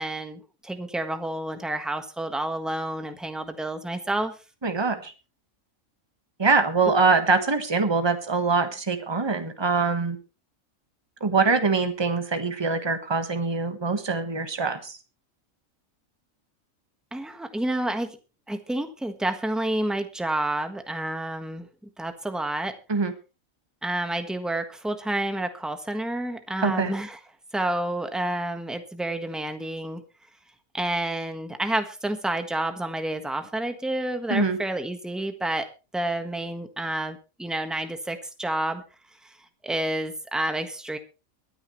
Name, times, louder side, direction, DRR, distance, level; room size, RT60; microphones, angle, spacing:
voice 1, 0.0-4.3 17.1-18.2 18.5-21.7 22.0-22.7 23.8-27.2 27.5-30.0 30.7-35.7 35.9-38.8 39.2-39.3 39.6-41.0, right 1 dB, ahead, 7 dB, 1.3 m, -29 dB
voice 2, 4.6-5.1 6.4-10.2 11.2-14.9 22.9-23.1 26.6-26.9 34.3-34.6, right 4 dB, 20° right, 8 dB, 1.3 m, -23 dB
23.0 x 9.5 x 3.2 m, 0.31 s
omnidirectional pair, 1.4 m